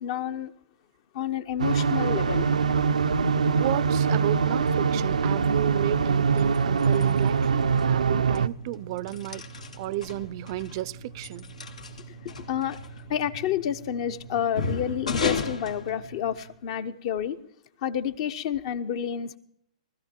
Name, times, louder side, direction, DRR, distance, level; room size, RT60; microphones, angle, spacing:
voice 1, 0.0-0.5 1.1-2.5 12.4-12.8 13.1-17.4 17.8-19.4, left 9 dB, 50° left, 1.1 m, -29 dB
sound 1, 1.6-8.5, right 5 dB, 90° right, 0.6 m, -23 dB
voice 2, 3.6-9.4 9.8-11.5, right 16 dB, 45° right, 0.5 m, -33 dB
sound 2, 6.1-16.6, left 3 dB, 85° left, 2.2 m, -36 dB
19.5 x 14.0 x 4.5 m
hypercardioid pair, 130°, 4 cm